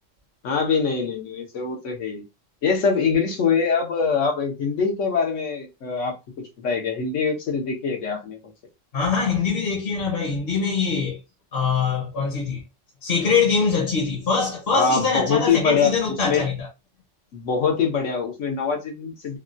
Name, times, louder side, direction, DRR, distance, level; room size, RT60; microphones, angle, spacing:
voice 1, 0.4-2.2 2.6-6.1 6.6-8.4 14.7-15.9 16.2-16.4 17.3-19.4, left 5 dB, 75° left, 1.3 m, -23 dB
voice 2, 8.9-11.2 11.5-12.6 13.0-16.7, left 5 dB, 50° left, 1.1 m, -23 dB
3.4 x 2.3 x 2.5 m
omnidirectional pair, 1.3 m